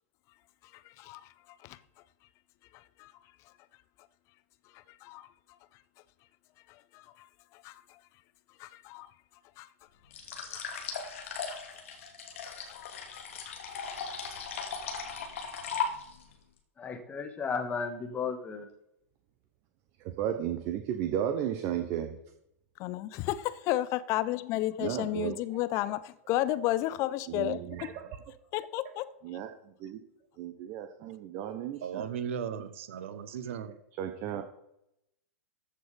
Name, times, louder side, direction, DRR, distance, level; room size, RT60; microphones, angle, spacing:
voice 1, 0.7-1.8 2.7-3.1 4.7-5.3 6.7-7.3 7.5-8.0 8.6-9.1 9.6-9.7 10.5-10.9 11.5-11.6 12.4-13.8 22.8-27.9 28.5-29.1 29.3-29.4, left 15 dB, 40° left, 0.8 m, -34 dB
sound 1, 10.1-16.3, left 5 dB, 60° left, 2.6 m, -37 dB
voice 2, 16.8-18.7 34.4-34.5, left 5 dB, 20° left, 1.8 m, -34 dB
voice 3, 20.0-22.1 24.8-25.4 27.3-28.1 29.2-30.0 30.4-32.1 33.6-34.4, right 10 dB, 40° right, 1.2 m, -34 dB
voice 4, 31.8-33.7, right 8 dB, 60° right, 1.2 m, -36 dB
14.5 x 6.9 x 5.2 m
figure-of-eight pair, 100°, 8 cm